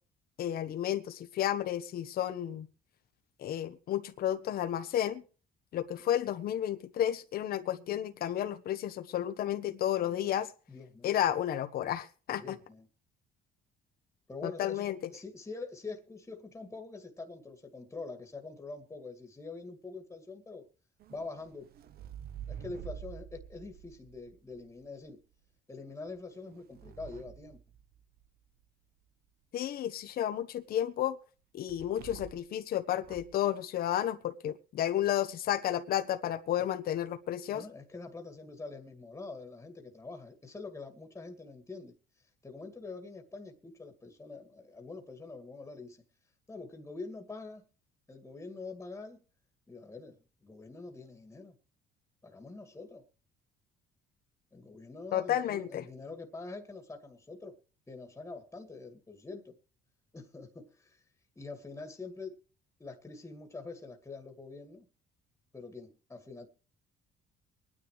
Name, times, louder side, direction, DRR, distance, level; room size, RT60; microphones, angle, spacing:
voice 1, 0.4-2.7 3.4-5.2 5.7-10.5 11.0-12.6 14.4-15.0 29.5-31.2 31.5-37.6 55.1-55.8, left 11 dB, 60° left, 1.2 m, -32 dB
voice 2, 10.7-11.1 12.3-12.9 14.3-20.6 21.1-21.7 22.5-25.2 25.7-27.6 37.5-41.9 42.4-46.0 46.5-47.6 48.1-49.2 49.7-51.6 52.2-53.0 54.5-57.6 57.9-59.6 60.1-61.0 61.4-62.4 62.8-64.9 65.5-66.5, left 3 dB, 15° left, 2.1 m, -45 dB
sound 1, 21.0-25.1 26.1-28.4 31.7-32.6 33.0-33.4, right 10 dB, 65° right, 1.0 m, -48 dB
24.0 x 9.9 x 3.2 m
cardioid pair, 110°, 17 cm